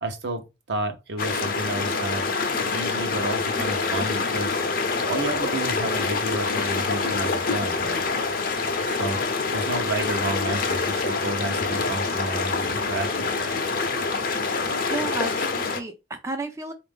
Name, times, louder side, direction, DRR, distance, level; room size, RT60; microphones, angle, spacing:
voice 1, 0.0-2.3 2.7-4.6 5.1-8.0 8.8-9.2 9.5-13.3, right 2 dB, 65° right, 0.8 m, -31 dB
sound 1, 1.2-15.8, left 4 dB, 50° left, 0.7 m, -26 dB
voice 2, 14.9-16.7, right 2 dB, 15° right, 0.4 m, -32 dB
4.0 x 2.5 x 3.5 m
head